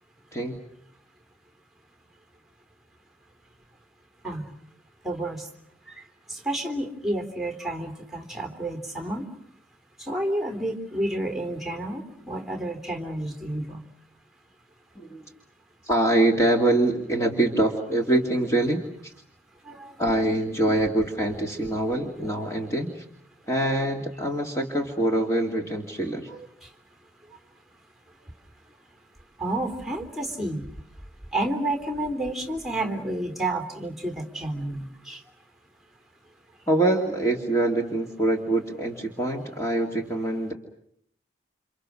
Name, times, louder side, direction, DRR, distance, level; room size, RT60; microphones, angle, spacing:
voice 1, 5.0-5.5 5.9-9.3 10.0-13.8 19.6-20.0 26.3-26.7 29.4-30.6 31.3-35.2, right 1 dB, ahead, 5 dB, 3.4 m, -30 dB
voice 2, 15.8-19.1 20.0-23.0 23.5-26.3 36.7-40.5, right 1 dB, 15° left, 1 dB, 2.6 m, -24 dB
30.0 x 27.5 x 6.4 m, 0.69 s
head